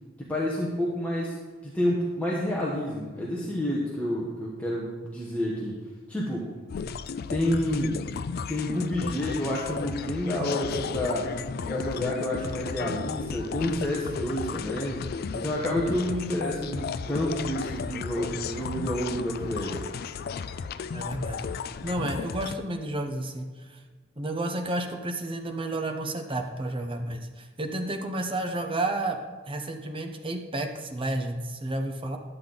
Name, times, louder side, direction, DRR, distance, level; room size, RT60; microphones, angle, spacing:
voice 1, 0.2-1.3 1.6-5.8 6.1-6.5 7.3-8.0 8.5-11.3 11.7-15.0 15.3-19.8, left 1 dB, 5° left, -5 dB, 1.1 m, -29 dB
sound 1, 6.7-22.5, left 5 dB, 50° left, 0.3 m, -34 dB
voice 2, 20.9-21.4 21.8-23.8 24.2-29.2 29.5-32.2, right 1 dB, 25° right, 4 dB, 0.9 m, -31 dB
10.5 x 7.7 x 4.0 m, 1.4 s
head